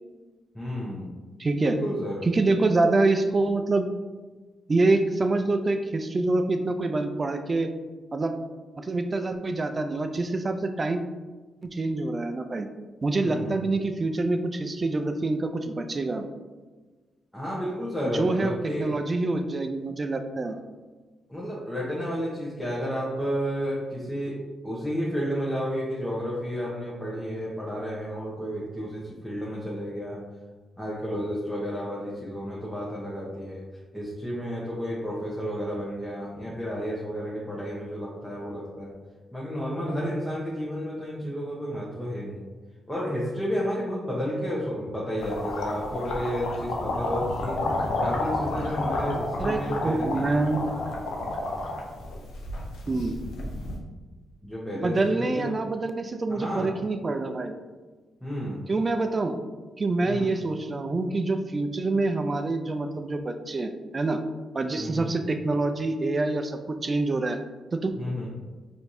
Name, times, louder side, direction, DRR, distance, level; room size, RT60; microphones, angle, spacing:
voice 1, 0.5-1.1 1.6-2.2 13.2-13.6 17.3-18.9 21.3-24.4 24.6-30.2 30.8-33.6 33.9-38.9 39.3-42.4 42.9-47.6 48.0-50.3 54.4-55.5 56.3-56.7 58.2-58.6 60.0-60.3 64.8-65.1 68.0-68.3, equal, 5° left, -7 dB, 0.9 m, -31 dB
voice 2, 1.4-1.8 2.3-3.9 4.7-7.7 8.1-8.3 8.8-11.0 11.6-12.7 13.0-16.2 18.1-18.5 18.8-20.6 49.4-50.7 52.9-53.2 54.7-57.5 58.7-59.4 59.8-64.2 64.5-67.4 67.7-67.9, right 2 dB, 35° right, 7 dB, 0.4 m, -26 dB
sound 1, 45.2-53.7, left 2 dB, 80° left, 0.6 m, -31 dB
4.4 x 2.7 x 2.6 m, 1.3 s
supercardioid pair, 60°, 0 cm